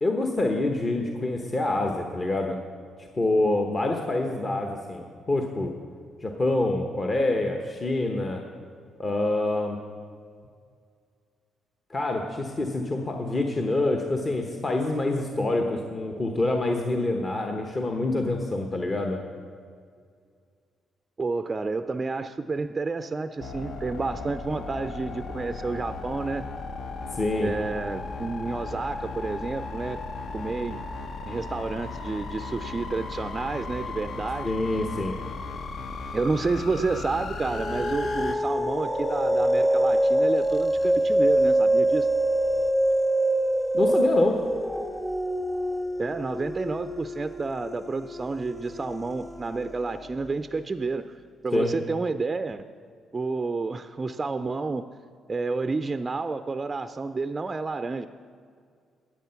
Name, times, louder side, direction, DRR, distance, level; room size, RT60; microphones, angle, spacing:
voice 1, 0.0-2.6 3.0-5.7 6.2-8.4 9.0-9.8 11.9-19.2 27.1-27.5 34.4-35.2 43.7-44.4 51.5-51.7, left 2 dB, 35° left, 3 dB, 1.0 m, -26 dB
voice 2, 21.2-26.5 27.4-30.0 30.3-30.8 31.3-34.5 36.1-42.1 46.0-51.1 51.4-52.7 53.1-54.9 55.3-58.1, right 3 dB, 25° right, 10 dB, 0.4 m, -30 dB
sound 1, 23.4-38.4, left 3 dB, 60° left, 0.9 m, -36 dB
sound 2, 37.3-50.1, right 1 dB, ahead, 0.8 m, -25 dB
12.0 x 8.8 x 5.8 m, 2.1 s
cardioid pair, 90°, 0 cm